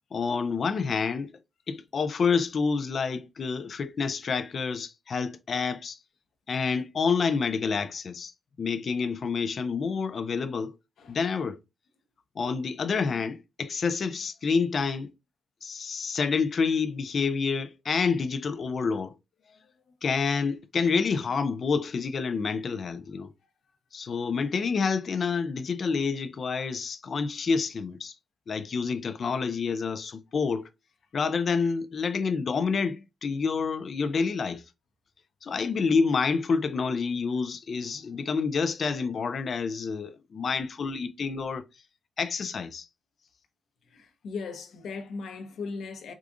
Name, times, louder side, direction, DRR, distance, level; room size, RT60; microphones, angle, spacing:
voice 1, 0.1-1.3 1.7-6.0 6.5-8.3 8.6-10.7 11.1-11.6 12.4-15.1 15.6-19.1 20.0-23.3 23.9-28.1 28.5-30.6 31.1-34.6 35.4-41.6 42.2-42.8, left 5 dB, 45° left, 0.4 m, -28 dB
voice 2, 19.4-19.9 23.4-23.7 24.2-24.3 43.8-46.1, left 4 dB, 70° left, 0.7 m, -39 dB
4.8 x 2.4 x 2.5 m
wide cardioid pair, 150°, 0 cm